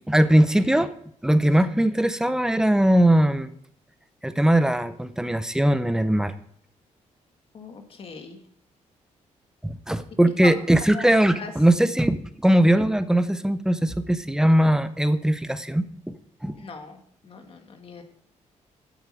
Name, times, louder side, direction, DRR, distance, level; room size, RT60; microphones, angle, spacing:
voice 1, 0.1-0.9 1.2-3.5 4.2-6.4 9.6-16.2 16.4-16.7, right 1 dB, 5° right, 12 dB, 0.7 m, -20 dB
voice 2, 7.5-8.4 10.4-10.6 10.9-11.5 16.6-18.0, left 4 dB, 45° left, 5 dB, 1.8 m, -39 dB
8.9 x 8.5 x 6.2 m, 0.65 s
cardioid pair, 125°, 13 cm